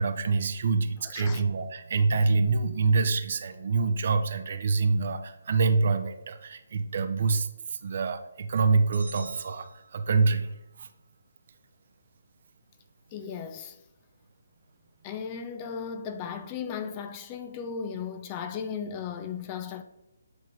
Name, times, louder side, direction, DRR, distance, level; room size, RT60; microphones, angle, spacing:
voice 1, 0.0-10.5 10.8-10.9, right 4 dB, 45° right, 0.6 m, -26 dB
voice 2, 1.1-1.4 13.1-13.8 15.0-19.8, left 6 dB, 25° left, 0.4 m, -36 dB
sound 1, 8.9-10.5, right 3 dB, 85° right, 1.1 m, -48 dB
7.9 x 3.0 x 4.9 m
figure-of-eight pair, 140°, 0 cm